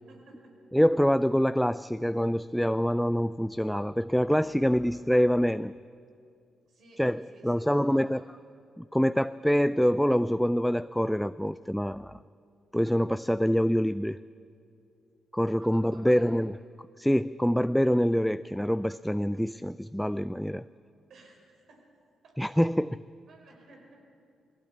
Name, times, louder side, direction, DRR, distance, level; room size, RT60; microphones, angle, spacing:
voice 1, 0.1-0.6 4.5-4.8 6.7-8.2 15.6-16.2 21.1-21.9 22.2-22.4 23.3-24.0, right 2 dB, 65° right, 1 dB, 4.6 m, -55 dB
voice 2, 0.7-5.7 7.0-8.2 8.8-12.2 12.7-14.2 15.3-16.6 17.0-20.6 22.4-23.0, equal, 5° left, 15 dB, 0.4 m, -25 dB
19.5 x 16.5 x 8.4 m, 2.4 s
hypercardioid pair, 45°, 0 cm